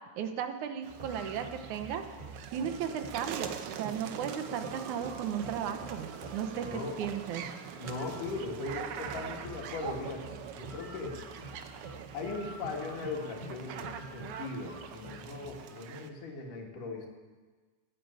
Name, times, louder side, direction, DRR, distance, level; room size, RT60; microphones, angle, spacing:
voice 1, 0.2-2.0 2.5-6.7 7.0-7.5, right 8 dB, 75° right, 7 dB, 2.3 m, -35 dB
sound 1, 0.8-16.1, right 8 dB, 90° right, 1.2 m, -44 dB
sound 2, 0.9-15.8, right 2 dB, 20° right, 1.7 m, -48 dB
voice 2, 6.7-7.0 7.8-11.2 12.1-17.1, left 3 dB, 80° left, 0 dB, 3.7 m, -39 dB
15.0 x 8.9 x 8.3 m, 1.4 s
omnidirectional pair, 3.6 m